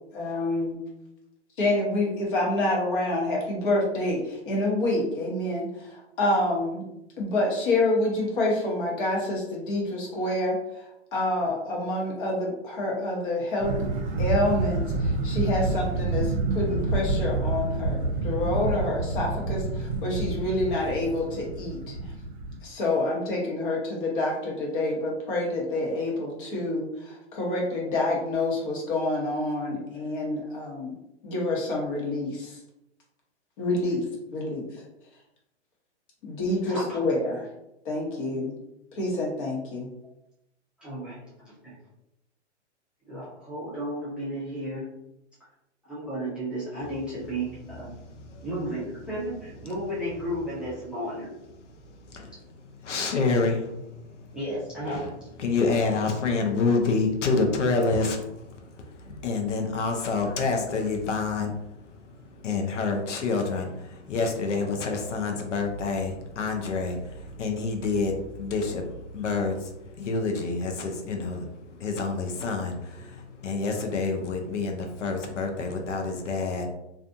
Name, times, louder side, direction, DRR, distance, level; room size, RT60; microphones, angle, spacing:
voice 1, 0.1-0.8 1.6-6.8 7.2-10.8 11.1-13.7 14.2-21.9 22.6-31.0 31.2-32.6 33.6-34.0 34.3-34.8 36.2-37.5 37.8-38.6 38.9-39.9, left 2 dB, 45° left, -2 dB, 1.0 m, -27 dB
sound 1, 13.6-22.6, right 2 dB, 50° right, 0.6 m, -28 dB
voice 2, 40.8-41.2 41.6-41.8 43.1-44.9 45.8-47.9 48.4-51.3 52.9-53.2 54.3-55.0, right 1 dB, 5° right, -11 dB, 0.5 m, -33 dB
voice 3, 52.8-54.0 54.8-55.1 55.4-61.5 62.4-76.7, left 4 dB, 90° left, 3 dB, 0.7 m, -28 dB
2.4 x 2.4 x 2.5 m, 0.86 s
hypercardioid pair, 140°, 35 cm